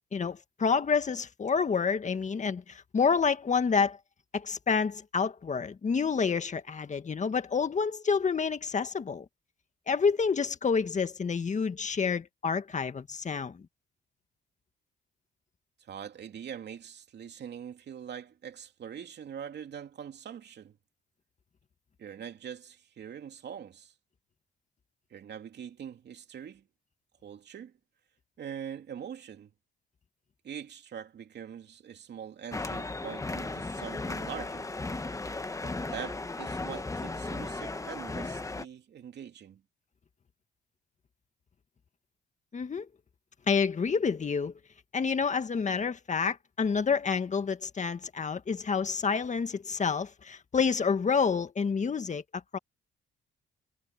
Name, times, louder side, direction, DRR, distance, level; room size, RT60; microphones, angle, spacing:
voice 1, 0.1-4.0 4.3-9.3 9.9-13.6 42.5-42.9 43.5-44.5 44.9-52.6, left 5 dB, 35° left, 1.7 m, -28 dB
voice 2, 15.8-20.8 22.0-23.9 25.1-26.6 27.2-27.7 28.4-29.5 30.4-34.7 35.6-39.6, right 8 dB, 60° right, 2.9 m, -43 dB
sound 1, 32.5-38.7, left 2 dB, 15° left, 1.2 m, -36 dB
cardioid pair, 90°, 20 cm